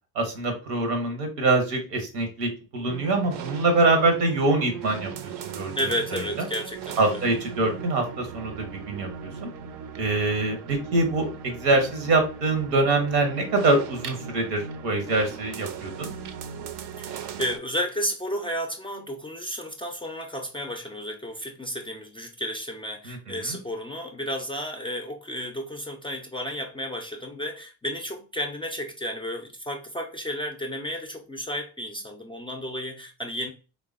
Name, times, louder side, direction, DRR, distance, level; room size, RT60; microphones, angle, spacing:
voice 1, 0.1-5.7 6.1-6.5 7.0-9.5 10.0-16.1 23.1-23.6, right 2 dB, 80° right, 0.8 m, -24 dB
sound 1, 2.9-17.6, right 7 dB, 55° right, 0.5 m, -38 dB
voice 2, 5.8-7.2 17.0-33.5, equal, 10° left, 0.3 m, -32 dB
3.2 x 2.1 x 2.3 m
hypercardioid pair, 40°, 48 cm